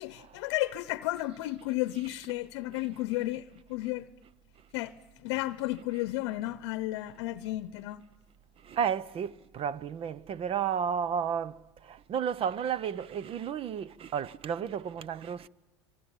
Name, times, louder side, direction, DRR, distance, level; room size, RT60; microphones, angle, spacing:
voice 1, 0.0-4.1 4.7-4.9 5.2-8.0, left 17 dB, 70° left, 0.9 m, -33 dB
voice 2, 8.6-15.5, right 8 dB, 40° right, 0.8 m, -32 dB
25.0 x 24.5 x 9.0 m
hypercardioid pair, 90°, 14 cm